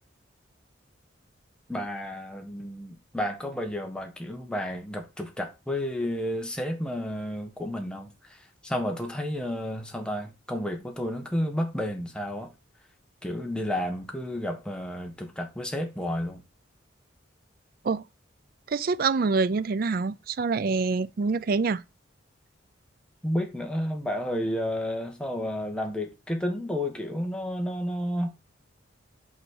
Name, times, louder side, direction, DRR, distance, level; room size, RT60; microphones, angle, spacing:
voice 1, 1.7-12.5 13.2-16.4 23.2-28.3, left 1 dB, 5° left, 1.2 m, -31 dB
voice 2, 18.7-21.8, right 4 dB, 50° right, 0.4 m, -26 dB
6.0 x 4.0 x 6.3 m
head